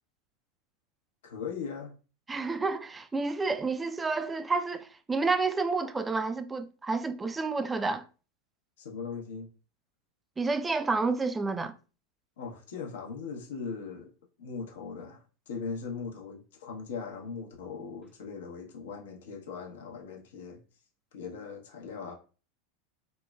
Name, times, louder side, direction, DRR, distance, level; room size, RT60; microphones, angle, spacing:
voice 1, 1.2-1.9 8.8-9.5 12.4-14.1 14.4-20.6 21.1-22.1, left 5 dB, 75° left, 0.7 m, -39 dB
voice 2, 2.3-8.0 10.4-11.7, right 3 dB, 15° right, 0.3 m, -30 dB
3.0 x 2.1 x 2.2 m
hypercardioid pair, 95°, 0 cm